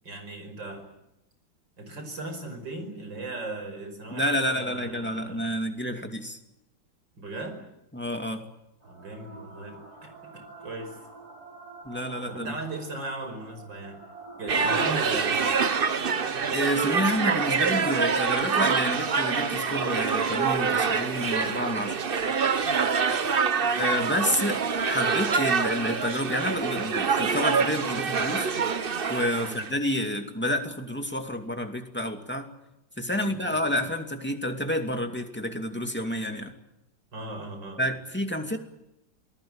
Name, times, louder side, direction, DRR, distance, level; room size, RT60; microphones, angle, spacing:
voice 1, 0.0-0.9 1.8-5.5 7.2-7.6 8.9-11.0 12.3-14.0 14.4-15.6 22.5-23.8 24.5-24.6 29.4-29.7 33.1-33.7 37.1-37.8, right 2 dB, 85° right, 7 dB, 6.0 m, -38 dB
voice 2, 4.1-6.4 7.9-8.5 11.8-12.6 16.5-22.1 23.8-28.5 29.1-32.5 33.0-36.5 37.8-38.6, equal, 5° left, 4 dB, 2.4 m, -29 dB
sound 1, 8.8-23.8, right 3 dB, 50° right, 8.8 m, -48 dB
sound 2, 14.5-29.7, right 5 dB, 35° right, 1.0 m, -26 dB
28.0 x 19.5 x 9.0 m, 0.88 s
omnidirectional pair, 1.9 m